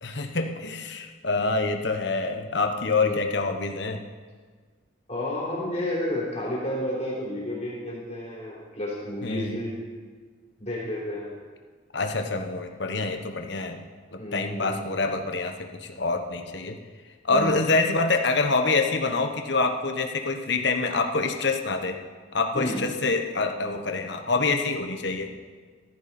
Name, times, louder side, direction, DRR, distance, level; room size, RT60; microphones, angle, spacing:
voice 1, 0.0-4.0 9.2-9.6 11.9-13.8 14.1-16.8 17.2-22.0 22.3-25.3, left 3 dB, 60° left, 5 dB, 1.2 m, -26 dB
voice 2, 5.1-9.8 10.6-11.4 14.2-14.8 17.3-17.6 22.5-22.8, left 1 dB, 35° left, -5 dB, 3.6 m, -31 dB
14.0 x 14.0 x 4.3 m, 1.5 s
head